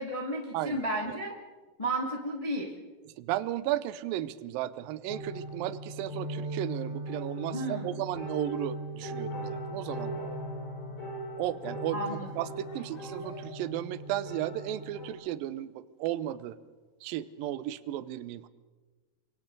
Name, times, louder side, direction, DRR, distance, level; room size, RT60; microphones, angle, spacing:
voice 1, 0.0-1.3 1.8-2.7 7.5-7.9 11.9-12.3, right 1 dB, 15° left, 0 dB, 1.1 m, -33 dB
voice 2, 0.5-1.2 3.0-10.2 11.4-16.6 17.0-18.5, right 13 dB, 75° right, 15 dB, 2.3 m, -35 dB
sound 1, 5.1-15.1, right 1 dB, 50° left, 5.4 m, -38 dB
29.5 x 24.0 x 4.0 m, 1.3 s
omnidirectional pair, 4.6 m